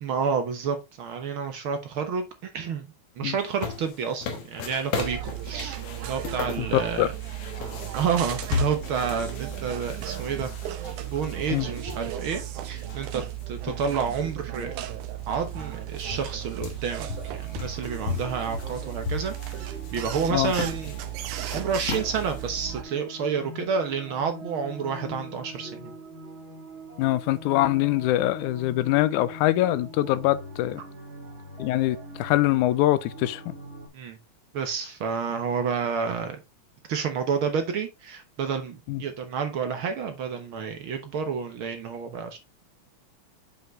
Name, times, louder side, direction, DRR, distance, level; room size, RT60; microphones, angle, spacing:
voice 1, 0.0-2.3 2.5-2.9 3.2-5.8 6.0-7.1 7.9-14.7 15.3-21.0 21.5-25.9 33.9-34.2 34.5-36.4 36.9-42.4, right 6 dB, 60° right, 1.5 m, -30 dB
sound 1, 3.4-13.4 13.9-14.0 14.9-15.0 15.2-22.6, left 5 dB, 60° left, 2.0 m, -36 dB
sound 2, 4.9-22.8, right 13 dB, 85° right, 2.3 m, -35 dB
voice 2, 6.6-7.1 11.5-11.7 20.3-20.5 27.0-30.8 31.6-33.5 38.9-39.0, left 15 dB, 90° left, 2.0 m, -24 dB
sound 3, 16.9-33.9, right 1 dB, 35° right, 2.6 m, -43 dB
7.8 x 5.4 x 3.2 m
omnidirectional pair, 3.4 m